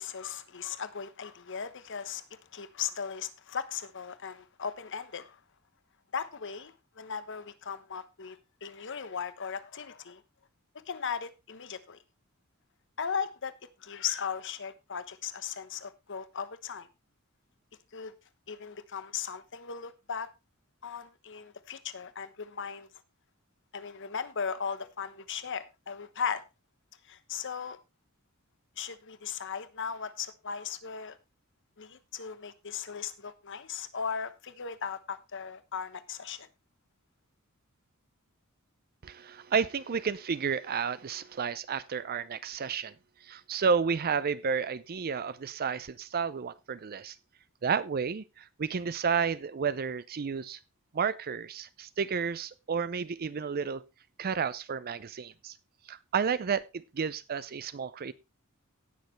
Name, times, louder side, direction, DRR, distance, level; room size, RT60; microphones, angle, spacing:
voice 1, 0.0-5.4 6.1-10.2 10.9-12.0 13.0-16.9 17.9-18.1 18.5-20.3 20.8-22.9 23.7-26.4 27.0-27.8 28.8-31.2 31.8-36.5, left 6 dB, 60° left, 1.1 m, -37 dB
voice 2, 39.0-42.9 43.2-47.2 47.6-50.6 50.9-53.8 54.2-55.6 55.9-58.1, right 6 dB, 45° right, 0.5 m, -31 dB
17.5 x 6.7 x 3.2 m
head